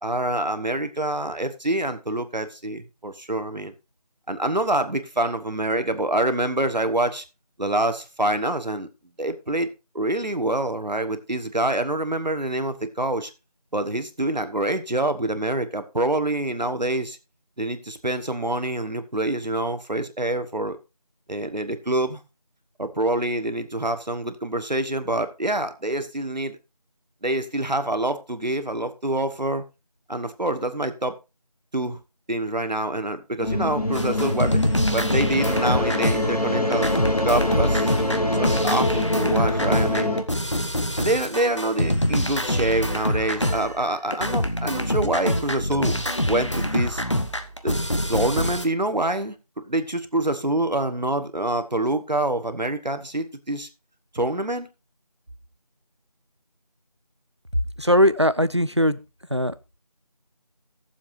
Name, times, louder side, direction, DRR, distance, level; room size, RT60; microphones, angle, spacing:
voice 1, 0.0-3.7 4.3-7.2 7.6-8.9 9.2-13.3 13.7-17.2 17.6-20.8 21.3-22.2 22.8-26.6 27.2-29.6 30.1-31.2 31.7-32.0 32.3-34.6 34.9-36.9 37.2-37.9 38.3-40.2 41.0-46.0 46.3-47.0 47.6-47.7 48.1-49.4 49.7-53.7 54.1-54.7, right 1 dB, 90° right, 1.4 m, -26 dB
sound 1, 33.4-40.2, left 1 dB, 65° left, 1.5 m, -24 dB
sound 2, 33.9-36.5 36.7-43.9 44.1-48.6, equal, 45° left, 0.9 m, -25 dB
voice 2, 57.8-59.0 59.3-59.5, equal, 40° right, 0.5 m, -19 dB
18.0 x 7.2 x 2.6 m
figure-of-eight pair, 180°, 21 cm